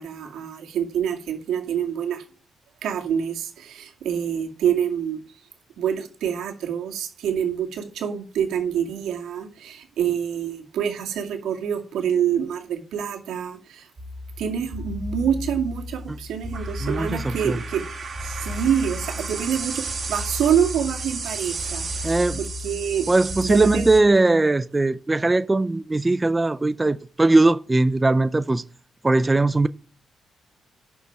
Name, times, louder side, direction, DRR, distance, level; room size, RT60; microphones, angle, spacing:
voice 1, 0.0-2.2 2.8-5.2 5.8-13.9 14.4-23.1 23.4-23.9, right 8 dB, 85° right, 2.3 m, -26 dB
sound 1, 14.0-24.0, right 1 dB, 35° right, 2.0 m, -32 dB
voice 2, 16.8-17.6 22.0-22.4 23.1-28.6 29.0-29.7, right 2 dB, 15° right, 0.4 m, -20 dB
11.0 x 6.6 x 4.7 m
cardioid pair, 155°, 0 cm